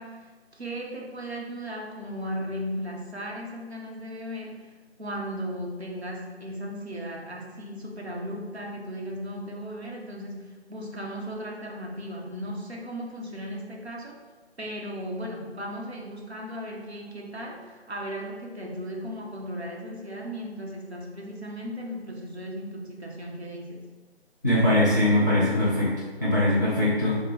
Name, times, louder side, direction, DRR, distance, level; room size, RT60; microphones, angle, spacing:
voice 1, 0.0-4.7 5.0-14.2 14.6-23.9, equal, 75° right, -1 dB, 1.0 m, -36 dB
voice 2, 24.4-25.9 26.2-27.2, left 1 dB, 20° right, -11 dB, 0.6 m, -21 dB
6.4 x 2.2 x 3.5 m, 1.3 s
figure-of-eight pair, 160°, 33 cm